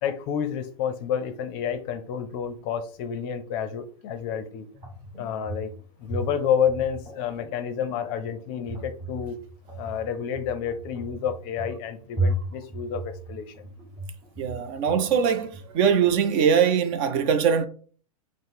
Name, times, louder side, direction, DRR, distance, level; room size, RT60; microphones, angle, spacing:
voice 1, 0.0-4.7 5.2-5.7 6.0-9.4 9.8-13.7, left 8 dB, 40° left, 0.5 m, -29 dB
sound 1, 4.7-15.7, right 1 dB, 15° right, 1.0 m, -35 dB
voice 2, 14.4-17.7, right 7 dB, 40° right, 0.4 m, -22 dB
5.3 x 2.0 x 3.5 m
hypercardioid pair, 140°, 19 cm